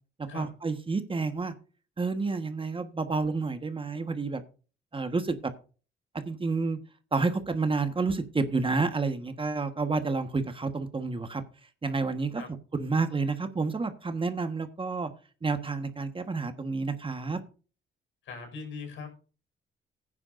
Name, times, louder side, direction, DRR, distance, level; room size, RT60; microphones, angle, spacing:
voice 1, 0.3-1.5 2.0-4.4 4.9-5.5 6.3-6.8 7.1-11.4 11.8-12.4 12.7-15.1 15.4-17.4, right 4 dB, 25° right, 8 dB, 1.4 m, -29 dB
voice 2, 18.2-19.2, left 4 dB, 75° left, 4 dB, 5.4 m, -40 dB
15.5 x 9.8 x 2.6 m, 0.36 s
cardioid pair, 90°, 20 cm